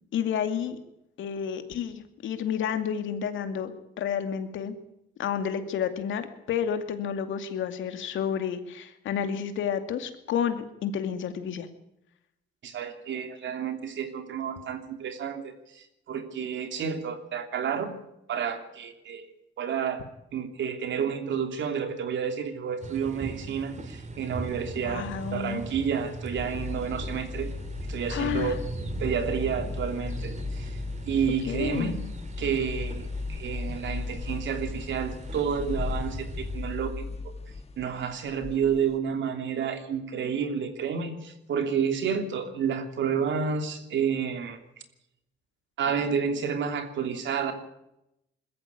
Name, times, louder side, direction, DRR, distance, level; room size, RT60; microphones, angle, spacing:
voice 1, 0.1-0.8 1.2-4.7 5.2-11.7 24.8-25.6 28.1-28.5 31.5-31.9, left 8 dB, 75° left, 8 dB, 2.4 m, -30 dB
voice 2, 12.6-18.0 18.3-19.2 19.6-20.0 20.3-27.5 27.9-28.5 29.0-30.8 31.1-32.0 32.4-37.3 37.8-44.6 45.8-47.5, right 7 dB, 70° right, 6 dB, 3.1 m, -30 dB
sound 1, 22.8-36.8, right 2 dB, 35° right, 2.8 m, -40 dB
sound 2, 26.4-39.0, left 3 dB, 30° left, 1.6 m, -36 dB
21.5 x 14.5 x 8.6 m, 0.84 s
cardioid pair, 90°, 20 cm